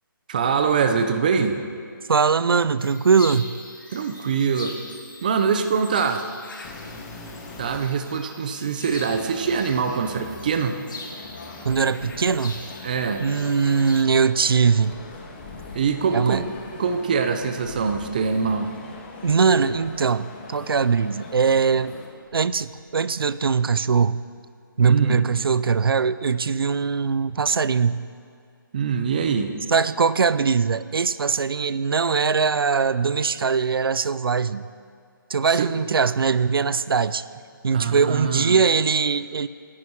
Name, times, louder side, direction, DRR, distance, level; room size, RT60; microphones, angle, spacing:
voice 1, 0.3-1.6 3.9-4.8 5.2-6.2 7.6-10.8 12.8-13.2 15.7-16.5 16.8-18.7 24.8-25.3 28.7-29.5 35.6-35.7 37.7-38.6, right 6 dB, 20° right, 7 dB, 0.6 m, -23 dB
voice 2, 2.1-3.5 11.6-12.6 13.2-14.9 16.1-16.4 19.2-21.9 22.3-24.2 24.8-28.0 29.7-34.6 35.3-37.2 37.6-39.5, right 5 dB, 85° right, 16 dB, 0.6 m, -21 dB
sound 1, 2.8-14.0, left 3 dB, 65° left, 2.6 m, -42 dB
sound 2, 6.6-8.0 8.9-9.0 11.6-13.7 14.9-18.6 18.9-20.0 20.7-20.9 21.5-21.6 22.3-23.4 23.6-24.1 25.4-25.5, left 3 dB, 10° left, 1.0 m, -45 dB
sound 3, 8.9-22.1, left 3 dB, 25° left, 1.6 m, -41 dB
27.0 x 9.9 x 4.6 m, 2.2 s
hypercardioid pair, 175°, 12 cm